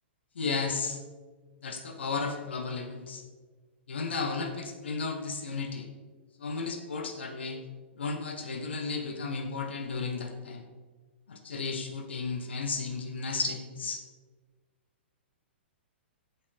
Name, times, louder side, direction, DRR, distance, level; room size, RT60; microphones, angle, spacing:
voice 1, 0.3-1.0 1.6-3.2 3.9-5.9 6.4-7.6 8.0-10.6 11.3-14.0, left 4 dB, 70° left, 5 dB, 1.2 m, -34 dB
8.4 x 7.3 x 5.1 m, 1.4 s
figure-of-eight pair, 110°, 6 cm